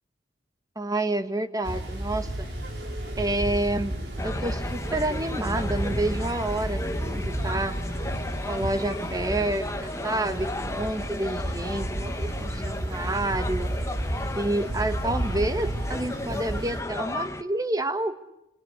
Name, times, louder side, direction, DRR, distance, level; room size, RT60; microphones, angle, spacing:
voice 1, 0.7-2.5 3.2-3.9 4.2-7.8 8.5-13.7 14.3-18.2, right 1 dB, 20° right, 10 dB, 1.3 m, -29 dB
sound 1, 1.6-16.8, right 1 dB, 65° right, 5.0 m, -32 dB
sound 2, 4.2-17.4, left 1 dB, 15° left, 1.1 m, -35 dB
27.5 x 26.5 x 6.7 m, 0.93 s
head